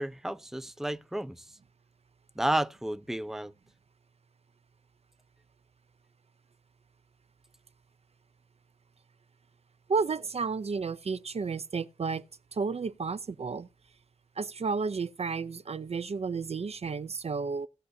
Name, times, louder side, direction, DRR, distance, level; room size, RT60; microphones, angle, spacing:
voice 1, 0.0-1.4 2.4-3.5, right 1 dB, 5° right, 0.6 m, -31 dB
voice 2, 9.9-12.2 12.5-13.7 14.4-17.7, right 5 dB, 50° right, 0.5 m, -32 dB
17.0 x 7.7 x 2.7 m
cardioid pair, 65°, 13 cm